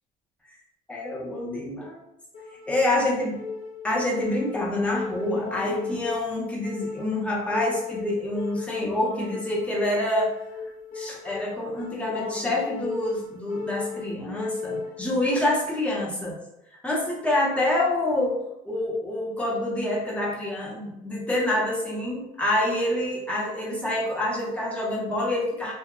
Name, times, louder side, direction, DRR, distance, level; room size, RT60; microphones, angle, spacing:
voice 1, 0.9-2.0 2.7-3.4 3.8-10.3 10.9-16.4 16.8-25.7, left 1 dB, 5° left, -4 dB, 0.7 m, -27 dB
sound 1, 2.3-15.3, left 4 dB, 55° left, 0.7 m, -35 dB
2.7 x 2.2 x 2.3 m, 0.86 s
cardioid pair, 110°, 17 cm